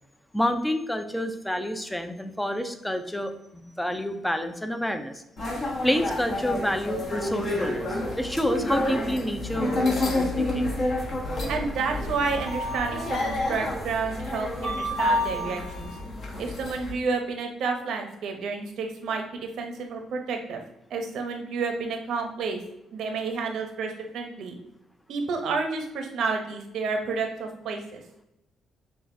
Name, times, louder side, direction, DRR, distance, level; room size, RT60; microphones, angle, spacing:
voice 1, 0.3-5.2 5.8-10.7, equal, 5° left, 8 dB, 0.5 m, -29 dB
sound 1, 5.4-16.9, left 1 dB, 50° left, 1.1 m, -29 dB
voice 2, 11.5-16.0 16.4-20.6 20.9-22.6 22.9-24.6 25.1-28.0, right 4 dB, 75° right, 3 dB, 0.8 m, -30 dB
6.1 x 2.4 x 2.6 m, 0.84 s
cardioid pair, 90°, 0 cm